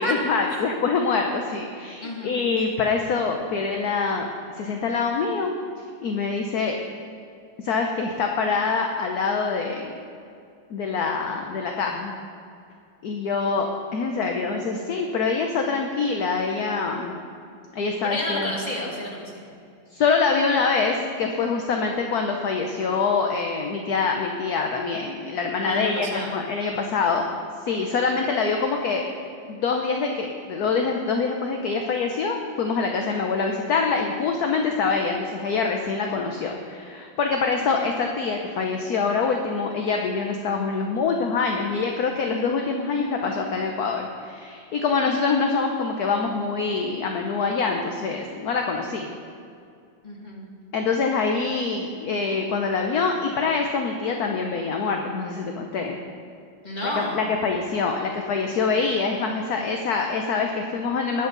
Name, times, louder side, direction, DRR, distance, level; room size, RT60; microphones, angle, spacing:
voice 1, 0.0-4.3 4.6-5.5 6.0-6.8 7.6-9.9 10.7-12.2 13.0-17.2 17.7-18.5 19.9-27.3 27.6-29.0 29.5-49.1 50.7-56.0 56.8-61.3, left 4 dB, 60° left, 3 dB, 1.2 m, -25 dB
voice 2, 2.0-2.3 18.0-19.4 25.6-26.4 50.0-50.5 56.6-57.3, left 1 dB, 20° left, -3 dB, 2.3 m, -30 dB
20.0 x 8.2 x 3.9 m, 2.5 s
omnidirectional pair, 2.2 m